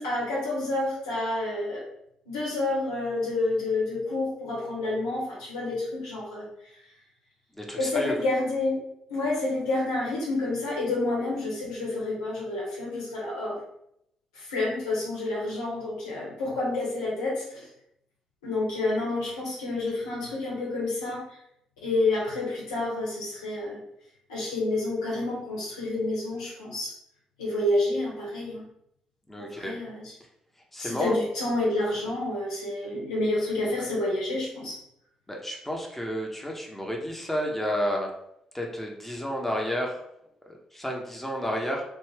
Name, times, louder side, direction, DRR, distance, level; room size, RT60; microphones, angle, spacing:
voice 1, 0.0-1.8 2.3-6.5 7.7-8.8 9.1-13.6 14.3-17.7 18.4-21.2 21.8-23.8 24.3-26.9 27.4-28.6 29.4-30.1 30.8-34.7, left 2 dB, 80° left, -6 dB, 1.0 m, -29 dB
voice 2, 7.6-8.1 29.3-29.8 30.7-31.2 35.3-38.1 38.5-40.0 40.5-41.8, equal, 5° left, 0 dB, 0.9 m, -31 dB
3.2 x 2.6 x 3.4 m, 0.76 s
figure-of-eight pair, 40°, 3 cm